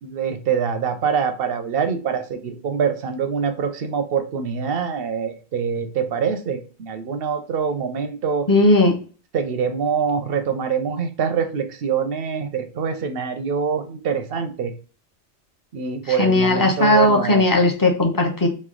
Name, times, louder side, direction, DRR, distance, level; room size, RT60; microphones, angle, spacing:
voice 1, 0.0-8.5 9.3-14.7 15.7-17.4, right 6 dB, 65° right, 8 dB, 0.7 m, -24 dB
voice 2, 8.5-8.9 16.2-18.5, left 2 dB, 25° left, 2 dB, 0.5 m, -17 dB
3.2 x 2.6 x 3.7 m, 0.38 s
omnidirectional pair, 1.2 m